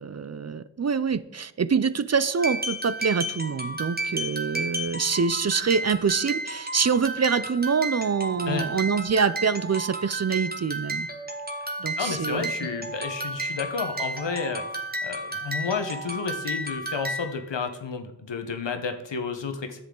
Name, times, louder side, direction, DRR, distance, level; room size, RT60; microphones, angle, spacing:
voice 1, 0.0-11.1 11.8-12.5, right 5 dB, 40° right, 15 dB, 0.4 m, -25 dB
sound 1, 2.4-17.4, right 2 dB, 20° right, 1.2 m, -32 dB
voice 2, 12.0-14.6 15.0-19.8, left 5 dB, 85° left, 6 dB, 1.0 m, -31 dB
10.5 x 8.0 x 3.8 m, 0.88 s
wide cardioid pair, 60°, 42 cm